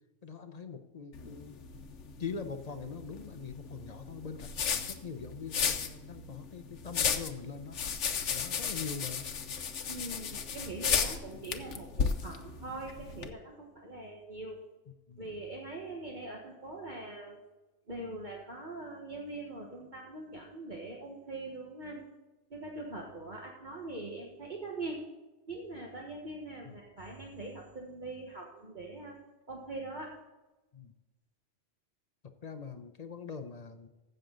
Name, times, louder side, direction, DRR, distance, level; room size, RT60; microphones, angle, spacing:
voice 1, 0.2-1.6 2.2-7.8 8.3-9.3 10.3-10.4 15.1-15.2 26.6-26.8 30.7-30.9 32.4-33.9, left 5 dB, 40° left, 8 dB, 0.8 m, -43 dB
sound 1, 1.1-13.3, left 6 dB, 75° left, 1.2 m, -35 dB
voice 2, 9.9-14.6 15.2-17.4 17.9-22.0 22.5-25.0 25.5-29.2 29.5-30.1, right 2 dB, 40° right, -1 dB, 1.6 m, -42 dB
15.5 x 6.8 x 3.9 m, 1.1 s
omnidirectional pair, 1.2 m